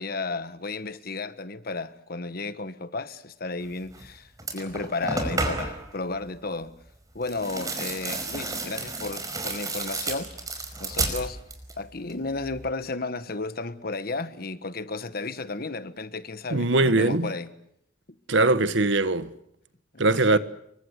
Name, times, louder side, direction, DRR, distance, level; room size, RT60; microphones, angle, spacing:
voice 1, 0.0-6.7 7.1-10.3 10.8-11.4 11.8-17.5 19.9-20.4, left 3 dB, 50° left, 1.4 m, -33 dB
sound 1, 3.9-4.1 4.4-5.9 7.2-11.8 12.1-12.7, right 2 dB, 20° right, 5.0 m, -32 dB
voice 2, 16.5-17.3 18.3-19.3 20.0-20.4, right 2 dB, 75° right, 1.4 m, -21 dB
28.0 x 23.5 x 8.2 m
head